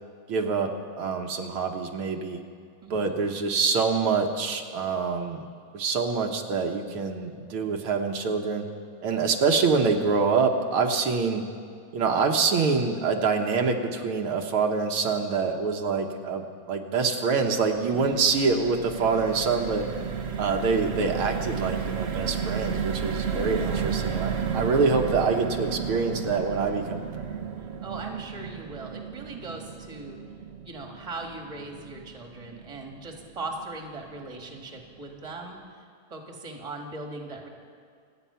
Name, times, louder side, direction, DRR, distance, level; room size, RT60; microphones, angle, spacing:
voice 1, 0.3-2.4 2.9-5.4 5.7-8.7 9.0-11.5 11.9-19.9 20.4-27.4, right 4 dB, 85° right, 3 dB, 2.1 m, -25 dB
voice 2, 2.8-3.2 17.9-18.2 23.5-23.9 27.8-30.2 30.6-35.8 36.1-37.5, right 2 dB, 15° right, 2 dB, 1.6 m, -39 dB
sound 1, 17.4-33.7 34.1-34.3 34.5-34.8, right 7 dB, 55° right, 0.7 m, -33 dB
27.0 x 9.1 x 5.7 m, 2.3 s
omnidirectional pair, 2.3 m